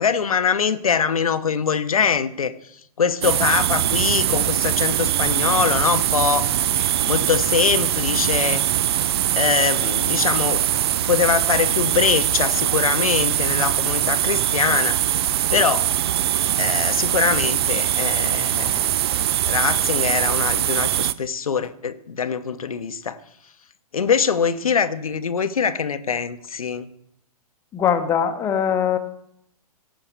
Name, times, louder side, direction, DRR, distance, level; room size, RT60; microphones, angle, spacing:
voice 1, 0.0-2.5 3.0-6.5 6.8-8.7 9.4-10.7 11.1-15.1 15.5-15.9 16.6-18.9 19.5-23.2 23.9-26.9, left 6 dB, 65° left, 10 dB, 0.9 m, -23 dB
sound 1, 3.2-21.1, right 11 dB, 40° right, 0.6 m, -22 dB
voice 2, 27.7-29.0, left 8 dB, 15° left, 7 dB, 1.0 m, -22 dB
16.5 x 5.8 x 8.3 m, 0.73 s
figure-of-eight pair, 120°, 20 cm